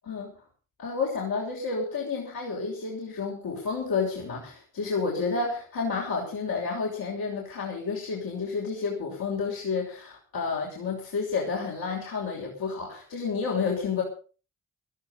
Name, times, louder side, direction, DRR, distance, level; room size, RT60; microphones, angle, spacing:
voice 1, 0.8-14.0, left 4 dB, 80° left, -2 dB, 5.9 m, -30 dB
16.0 x 14.0 x 5.6 m, 0.39 s
supercardioid pair, 45°, 35 cm